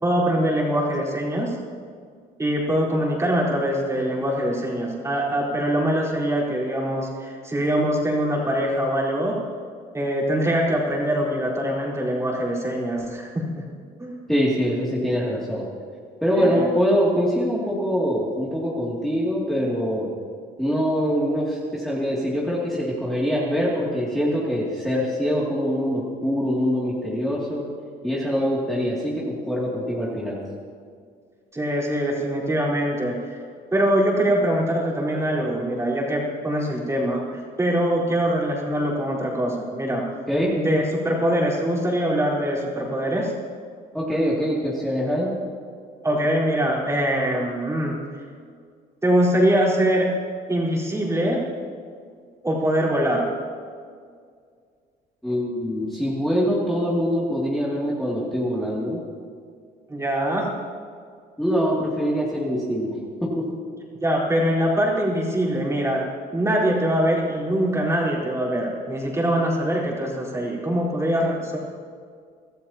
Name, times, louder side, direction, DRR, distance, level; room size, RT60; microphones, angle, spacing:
voice 1, 0.0-1.5 2.4-9.4 9.9-13.6 14.0-14.2 16.3-16.7 31.5-33.4 33.7-40.0 40.6-43.3 46.0-48.0 49.0-50.1 50.5-51.4 52.4-53.3 59.9-60.5 64.0-66.1 66.3-71.6, equal, 15° right, -4 dB, 4.5 m, -23 dB
voice 2, 14.3-15.6 16.2-20.1 20.6-27.6 28.0-30.4 40.3-40.5 43.9-45.3 55.2-59.0 61.4-62.9 63.2-63.4, equal, ahead, -6 dB, 2.7 m, -24 dB
24.5 x 14.0 x 3.0 m, 2.1 s
cardioid pair, 110°, 17 cm